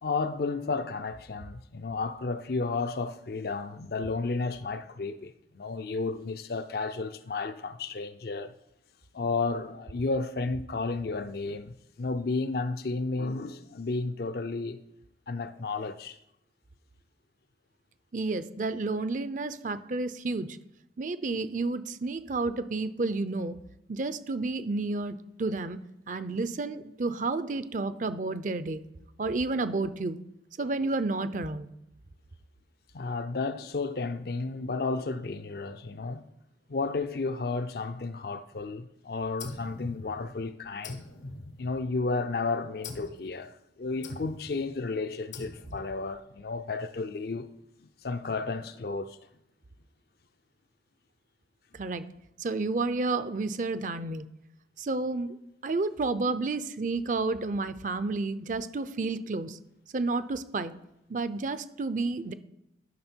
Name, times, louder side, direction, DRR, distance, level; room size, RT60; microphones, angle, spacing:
voice 1, 0.0-8.5 9.1-14.8 15.3-16.2 26.3-26.4 32.9-36.3 36.7-41.1 41.6-47.5 48.0-49.2, left 3 dB, 55° left, 0.5 m, -32 dB
voice 2, 18.1-20.5 21.0-23.5 23.9-25.8 26.1-28.8 29.2-30.2 30.6-31.7 51.7-52.0 52.4-54.3 54.8-55.4 55.6-59.6 59.9-60.7 61.1-62.3, right 3 dB, 45° right, 0.5 m, -30 dB
sound 1, 39.4-40.4 40.8-42.1 42.8-43.3 44.0-44.6 45.3-46.0, left 3 dB, 85° left, 1.1 m, -43 dB
12.5 x 6.0 x 4.4 m
head